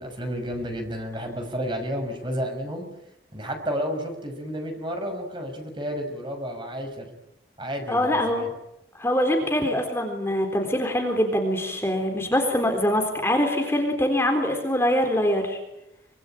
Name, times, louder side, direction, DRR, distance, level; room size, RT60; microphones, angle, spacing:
voice 1, 0.0-2.9 3.3-7.1 7.6-8.5, equal, 25° right, 5 dB, 6.1 m, -31 dB
voice 2, 7.9-8.5 9.0-15.6, equal, 15° left, 3 dB, 3.7 m, -23 dB
25.0 x 25.0 x 8.9 m, 0.87 s
head